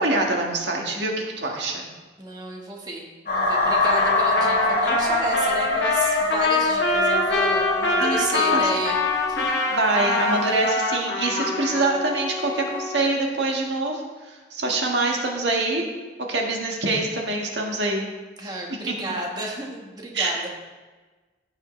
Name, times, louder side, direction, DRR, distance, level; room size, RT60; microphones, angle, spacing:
voice 1, 0.0-1.9 8.0-8.2 8.5-8.6 9.8-15.9 16.3-18.1 18.9-19.0 20.1-20.5, right 2 dB, 75° right, 0 dB, 1.6 m, -25 dB
voice 2, 2.2-9.0 9.3-9.5 18.4-20.5, right 2 dB, 20° right, -1 dB, 1.4 m, -32 dB
sound 1, 3.3-8.2, left 2 dB, 55° left, 3.3 m, -23 dB
Trumpet, 3.8-11.8, left 3 dB, 75° left, 1.3 m, -25 dB
Wind instrument woodwind instrument, 7.1-13.2, left 2 dB, 15° left, 0.3 m, -31 dB
15.5 x 6.5 x 3.2 m, 1.3 s
head